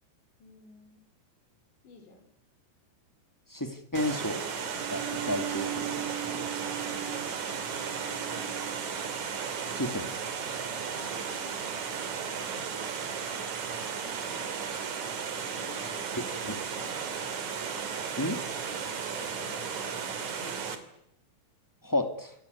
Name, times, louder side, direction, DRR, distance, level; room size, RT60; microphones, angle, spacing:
voice 1, 0.4-1.0 1.8-2.3 7.9-8.5 11.0-11.8 13.9-14.5 15.4-17.3 19.1-20.9, left 4 dB, 85° left, 5 dB, 7.2 m, -51 dB
voice 2, 3.5-4.4 4.9-6.5 9.7-10.1 16.4-16.5 18.2-18.4 21.8-22.3, left 1 dB, 10° left, 7 dB, 0.8 m, -32 dB
Water, 3.9-20.8, right 6 dB, 50° right, 3.4 m, -35 dB
Bowed string instrument, 4.7-9.4, right 13 dB, 65° right, 3.0 m, -39 dB
28.0 x 22.0 x 9.5 m, 0.79 s
omnidirectional pair, 5.0 m